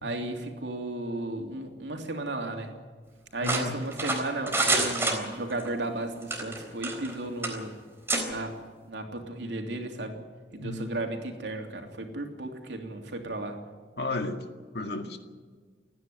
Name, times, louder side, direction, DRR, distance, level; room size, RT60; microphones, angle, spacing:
voice 1, 0.0-2.7 3.3-7.7 8.3-8.6 8.9-10.2 10.5-13.6, right 2 dB, 90° right, 3.1 m, -34 dB
voice 2, 3.4-3.7 10.6-10.9 14.0-14.5 14.7-15.2, left 2 dB, 65° left, 2.0 m, -33 dB
sound 1, 3.4-5.7 6.2-7.1 7.4-7.6 8.1-8.2, right 2 dB, 15° right, 3.9 m, -27 dB
29.0 x 10.5 x 9.4 m
head